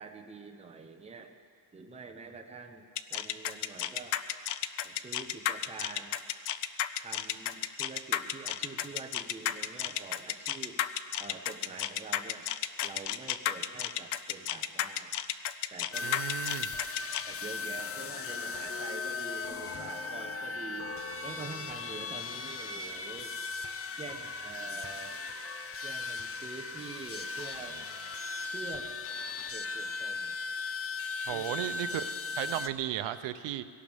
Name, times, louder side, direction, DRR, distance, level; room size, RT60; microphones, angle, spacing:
voice 1, 0.0-1.4 1.7-4.2 4.8-6.2 7.0-10.8 11.2-12.5 12.8-15.1 15.7-16.3 17.3-20.9 21.2-23.3 24.0-25.2 25.8-27.8 28.5-29.0 29.5-30.4 31.3-31.5 31.8-32.0 32.5-32.6, right 4 dB, 15° right, 3 dB, 0.8 m, -46 dB
sound 1, 3.0-17.2, left 12 dB, 70° left, 0.7 m, -32 dB
sound 2, 15.9-32.7, left 4 dB, 35° left, 0.5 m, -37 dB
voice 2, 16.0-16.7 31.3-33.6, right 12 dB, 90° right, 11 dB, 0.7 m, -35 dB
22.5 x 17.5 x 3.5 m, 2.3 s
cardioid pair, 165°, 42 cm